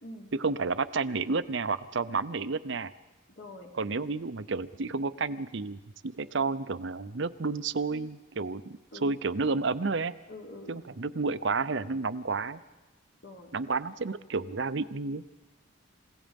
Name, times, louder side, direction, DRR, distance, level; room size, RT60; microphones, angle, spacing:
voice 1, 0.4-2.9 3.7-10.1 10.7-12.6 13.5-15.2, right 4 dB, 60° right, 13 dB, 0.7 m, -31 dB
voice 2, 3.4-3.7 8.9-9.1 10.3-11.0 13.2-13.5, left 1 dB, 55° left, 1 dB, 3.4 m, -45 dB
29.0 x 17.0 x 5.3 m, 1.1 s
head